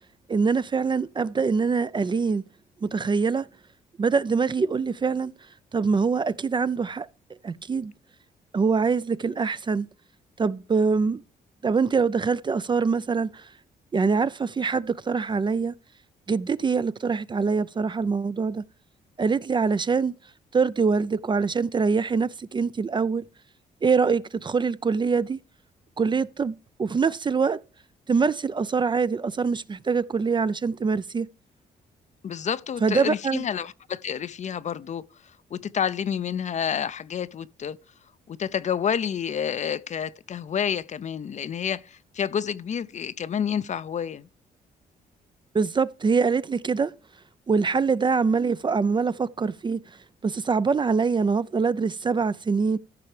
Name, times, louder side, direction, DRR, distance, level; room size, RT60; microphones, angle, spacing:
voice 1, 0.3-2.4 2.8-3.5 4.0-5.3 5.7-7.1 7.4-7.9 8.5-9.9 10.4-11.2 11.6-13.5 13.9-15.7 16.3-18.6 19.2-20.1 20.5-23.3 23.8-25.4 26.0-27.6 28.1-31.3 32.8-33.4 45.5-46.9 47.5-49.8 50.2-52.8, right 5 dB, 30° right, 0.4 m, -24 dB
voice 2, 32.2-37.8 38.3-44.3, left 8 dB, 45° left, 0.5 m, -29 dB
14.5 x 5.7 x 3.2 m
cardioid pair, 75°, 17 cm